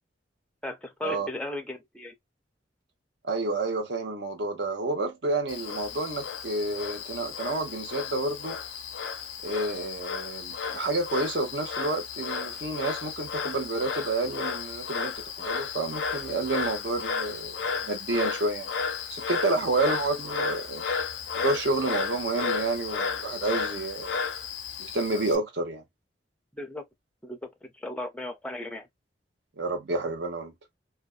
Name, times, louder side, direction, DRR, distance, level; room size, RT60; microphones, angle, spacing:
voice 1, 0.6-2.1 19.7-19.8 26.5-26.8 27.2-28.9, left 2 dB, 5° left, 0.4 m, -36 dB
voice 2, 3.2-8.6 9.4-17.6 17.8-18.7 19.1-20.8 21.3-24.2 24.8-25.8 29.6-30.5, right 2 dB, 65° right, 0.8 m, -29 dB
Frog, 5.5-25.4, left 6 dB, 90° left, 0.5 m, -33 dB
2.5 x 2.2 x 2.3 m
head